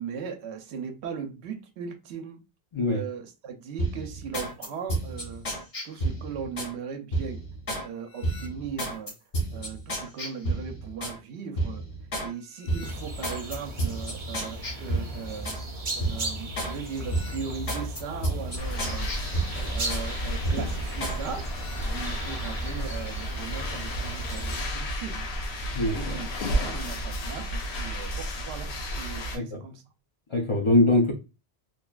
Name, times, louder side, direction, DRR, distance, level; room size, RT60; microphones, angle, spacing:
voice 1, 0.0-2.4 2.9-5.5 5.8-7.5 7.8-9.1 9.5-11.9 12.2-15.6 16.0-19.2 19.5-21.5 21.8-25.3 25.8-29.8, right 6 dB, 85° right, 0.9 m, -38 dB
sound 1, 3.8-6.7 7.1-7.9 8.2-11.2 11.6-12.3 12.6-15.6 16.0-16.7 17.1-20.1 20.4-21.2 21.5-21.8, right 2 dB, 55° left, 1.3 m, -32 dB
sound 2, 12.8-24.6, right 1 dB, 35° right, 0.5 m, -36 dB
sound 3, 18.6-29.4, equal, 75° left, 0.8 m, -32 dB
voice 2, 30.3-31.1, left 2 dB, 40° left, 0.4 m, -22 dB
2.9 x 2.1 x 2.3 m
omnidirectional pair, 1.1 m